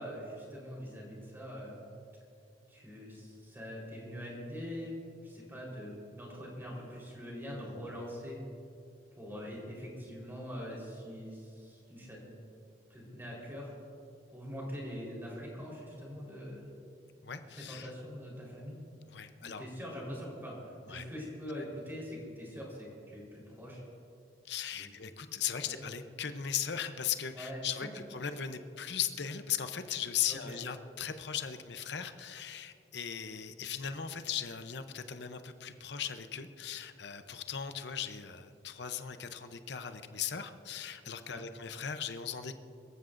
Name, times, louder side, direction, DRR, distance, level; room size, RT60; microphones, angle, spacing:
voice 1, 0.0-1.8 2.7-8.4 9.2-12.3 12.9-13.7 14.3-16.7 17.4-18.9 19.4-23.8 24.7-24.9 25.6-25.9 27.3-27.6 30.3-30.6 41.3-41.5, equal, 10° right, -4 dB, 4.1 m, -43 dB
voice 2, 17.2-17.9 19.1-19.6 20.9-21.0 24.4-42.6, left 8 dB, 65° left, 9 dB, 0.7 m, -38 dB
23.0 x 14.0 x 2.6 m, 2.5 s
head